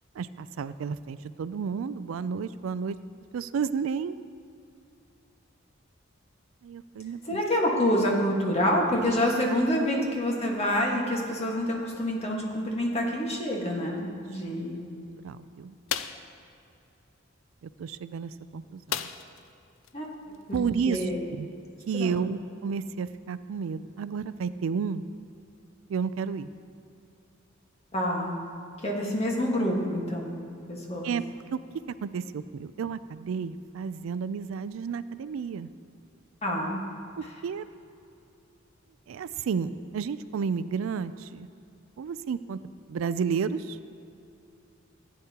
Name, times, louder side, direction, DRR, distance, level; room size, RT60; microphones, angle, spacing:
voice 1, 0.1-3.0 3.3-4.2 6.6-7.4 9.5-9.6 13.9-14.0 15.2-15.8 17.6-19.1 20.5-21.5 21.9-25.0 25.9-26.5 31.0-31.2 31.5-31.6 32.0-35.7 37.2-37.6 39.1-41.5 42.0-42.6 42.9-43.8, right 6 dB, 90° right, 14 dB, 0.4 m, -32 dB
voice 2, 7.3-14.9 19.9-20.1 20.5-21.2 22.0-22.2 27.9-28.3 28.8-30.3 30.7-31.1 36.4-36.8, equal, 30° left, -1 dB, 1.5 m, -27 dB
sound 1, 15.9-16.3 18.9-19.5 19.8-19.9 20.3-20.5, left 9 dB, 90° left, 0.4 m, -33 dB
15.5 x 9.6 x 2.9 m, 2.6 s
head